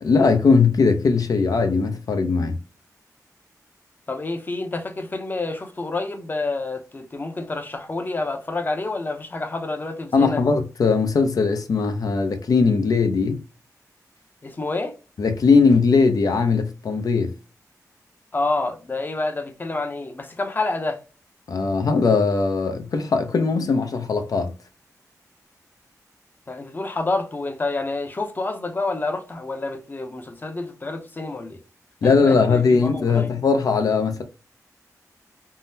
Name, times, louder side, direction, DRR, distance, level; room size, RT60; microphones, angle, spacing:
voice 1, 0.0-2.6 10.1-13.4 15.2-17.3 21.5-24.5 32.0-34.2, left 4 dB, 75° left, 0.5 m, -19 dB
voice 2, 4.1-10.4 14.4-14.9 18.3-21.0 26.5-31.6 32.0-33.3, left 2 dB, 30° left, 0.6 m, -28 dB
3.7 x 2.0 x 2.7 m
wide cardioid pair, 90°, 6 cm